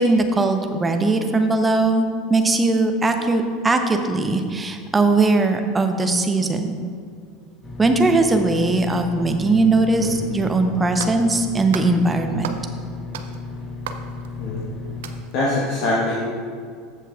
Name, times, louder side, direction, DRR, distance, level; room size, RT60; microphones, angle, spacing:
voice 1, 0.0-6.8 7.8-12.5, right 2 dB, 15° right, 5 dB, 0.8 m, -19 dB
sound 1, 7.6-15.2, left 3 dB, 25° left, 1.1 m, -34 dB
sound 2, 11.0-11.4 11.7-12.0 12.4-12.8 13.1-14.6 15.0-15.4, right 7 dB, 65° right, 0.5 m, -35 dB
voice 2, 15.3-16.1, left 2 dB, 50° left, -6 dB, 1.4 m, -23 dB
14.5 x 5.7 x 2.5 m, 2.1 s
figure-of-eight pair, 75°, 0 cm